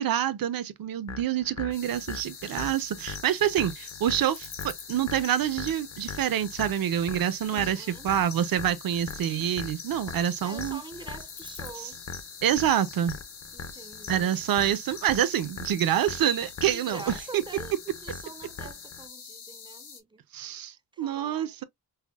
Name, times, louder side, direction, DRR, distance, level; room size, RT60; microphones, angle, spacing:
voice 1, 0.0-10.8 11.8-11.9 12.4-13.1 14.1-17.4 20.3-21.6, right 10 dB, 60° right, 0.6 m, -27 dB
sound 1, 1.1-19.1, left 5 dB, 45° left, 0.6 m, -41 dB
sound 2, 1.7-20.0, left 6 dB, 85° left, 1.5 m, -44 dB
voice 2, 7.5-8.1 10.4-12.0 13.5-14.4 16.6-20.2 20.9-21.6, right 3 dB, 15° right, 0.4 m, -45 dB
5.6 x 2.1 x 2.3 m
wide cardioid pair, 160°, 39 cm